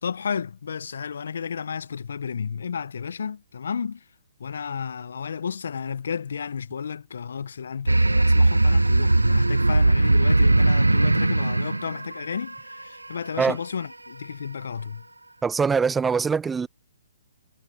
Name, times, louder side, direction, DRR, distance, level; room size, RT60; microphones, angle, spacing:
voice 1, 0.0-4.0 4.4-15.0, left 6 dB, 65° left, 1.2 m, -32 dB
sound 1, 7.9-12.8, right 2 dB, 90° right, 0.5 m, -19 dB
voice 2, 15.4-16.7, right 5 dB, 10° right, 0.5 m, -23 dB
figure-of-eight pair, 130°, 0 cm